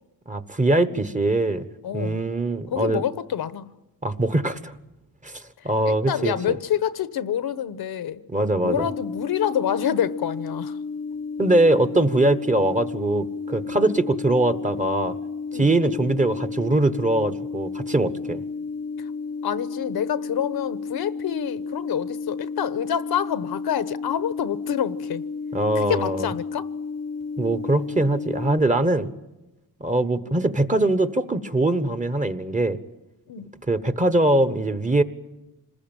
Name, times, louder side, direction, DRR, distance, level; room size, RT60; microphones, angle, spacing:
voice 1, 0.3-1.6 1.9-3.0 4.0-4.7 5.2-6.3 8.3-8.9 11.4-15.1 15.5-18.4 25.5-26.3 27.4-29.1 29.8-32.8 33.4-35.0, right 2 dB, 20° right, 1.2 m, -22 dB
voice 2, 1.8-2.2 2.7-3.7 5.9-8.2 8.6-10.8 13.8-13.9 15.5-15.7 19.0-19.1 19.4-25.3 25.7-26.7 33.3-33.5, left 9 dB, 70° left, 1.1 m, -27 dB
sound 1, 8.6-28.6, left 4 dB, 45° left, 0.9 m, -32 dB
26.5 x 20.5 x 9.0 m
cardioid pair, 100°, 38 cm